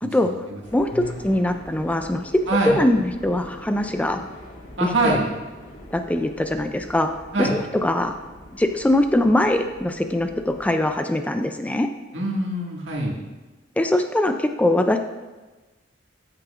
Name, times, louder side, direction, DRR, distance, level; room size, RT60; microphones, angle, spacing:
voice 1, 0.0-0.6 0.9-1.2 2.5-2.7 4.8-5.3 7.3-7.5 12.1-13.2, right 2 dB, 75° right, -2 dB, 2.0 m, -24 dB
sound 1, 0.6-10.9, equal, 45° left, 1.8 m, -44 dB
voice 2, 0.7-4.2 5.0-5.2 5.9-7.1 7.4-8.2 8.5-11.9 13.8-15.0, left 1 dB, 10° left, 6 dB, 0.4 m, -22 dB
13.0 x 7.7 x 2.5 m, 1.2 s
head